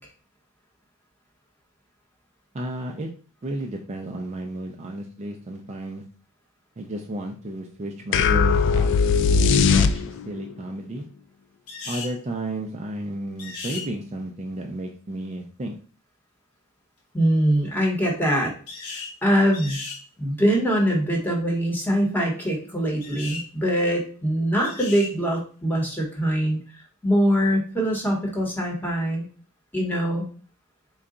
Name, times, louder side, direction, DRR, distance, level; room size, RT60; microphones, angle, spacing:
voice 1, 2.5-3.1 3.4-6.0 6.8-8.9 9.3-11.1 11.8-15.8, right 1 dB, 30° right, 2 dB, 0.4 m, -33 dB
sound 1, 8.1-10.4, left 5 dB, 60° left, 0.3 m, -19 dB
sound 2, 11.7-12.2 13.4-13.9 18.7-19.1 19.5-20.0 23.0-23.5 24.6-25.1, left 4 dB, 75° left, 1.0 m, -36 dB
voice 2, 17.1-18.5 19.2-19.8 20.2-26.6 27.0-29.2 29.7-30.3, equal, 10° left, -1 dB, 1.0 m, -23 dB
3.8 x 2.3 x 3.7 m, 0.40 s
head